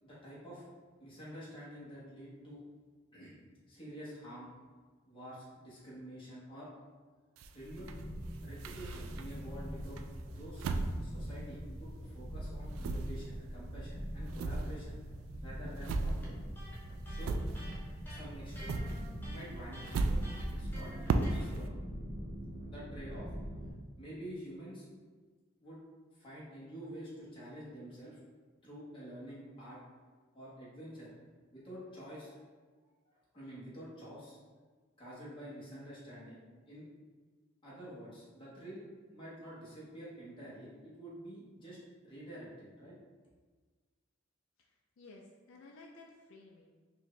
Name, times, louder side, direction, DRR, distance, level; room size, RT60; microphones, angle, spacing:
voice 1, 0.0-0.6 1.0-2.6 3.1-3.4 3.7-4.5 5.1-6.7 7.5-7.9 8.4-10.0 10.3-10.7 11.0-14.9 15.4-16.3 17.0-17.4 18.1-18.8 19.3-20.2 20.5-20.9 21.3-21.7 22.6-23.3 24.0-24.8 25.6-25.8 26.2-28.2 28.6-29.8 30.3-31.1 31.5-32.4 33.3-34.4 35.0-36.4 36.7-36.9 37.6-38.8 39.1-41.8 42.0-42.9, equal, 25° left, -8 dB, 1.3 m, -48 dB
sound 1, 7.4-9.5 10.0-12.1 12.3-18.0 18.3-21.7, right 3 dB, 85° right, 0.3 m, -37 dB
sound 2, 7.8-23.7, equal, 40° right, 0.7 m, -43 dB
Electric guitar, 16.2-21.5, equal, 10° left, 0.8 m, -51 dB
voice 2, 44.6-46.7, left 3 dB, 70° left, -1 dB, 0.4 m, -55 dB
4.5 x 2.5 x 3.2 m, 1.4 s
head